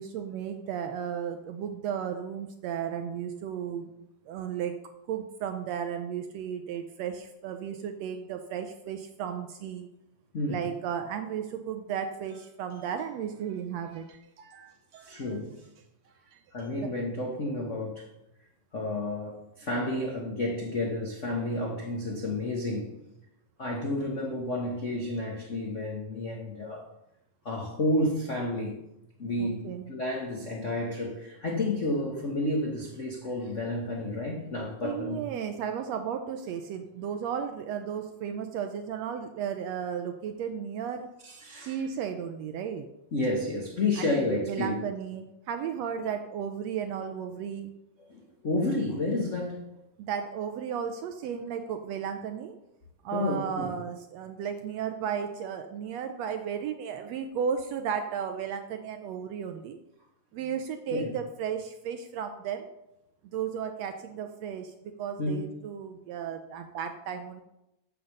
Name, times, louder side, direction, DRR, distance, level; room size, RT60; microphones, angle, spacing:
voice 1, 0.0-3.9 4.3-4.7 5.1-9.9 10.5-15.3 16.3-16.9 29.4-29.9 34.8-41.1 41.6-42.9 44.0-47.7 50.0-52.5 53.0-59.8 60.3-62.7 63.3-67.4, right 8 dB, 75° right, 7 dB, 1.6 m, -34 dB
voice 2, 15.0-15.6 16.5-18.1 18.7-22.9 23.6-26.9 27.4-28.8 29.2-35.2 41.2-41.8 43.1-44.8 48.1-49.7 53.1-53.7 60.9-61.1 65.2-65.4, left 2 dB, 65° left, -1 dB, 0.7 m, -31 dB
7.9 x 7.2 x 6.5 m, 0.88 s
omnidirectional pair, 3.4 m